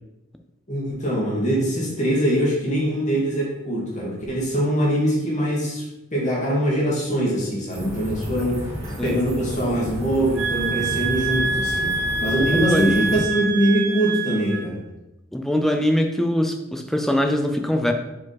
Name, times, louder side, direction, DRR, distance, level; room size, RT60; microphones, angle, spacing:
voice 1, 0.7-5.9 6.1-8.7 9.0-14.8, equal, 35° left, -4 dB, 1.9 m, -23 dB
sound 1, 7.7-13.2, equal, 30° right, 1.7 m, -32 dB
sound 2, 10.3-14.7, right 4 dB, 70° right, 1.1 m, -26 dB
voice 2, 12.4-13.3 15.3-17.9, left 1 dB, ahead, 5 dB, 0.5 m, -22 dB
4.9 x 4.7 x 4.1 m, 0.96 s
head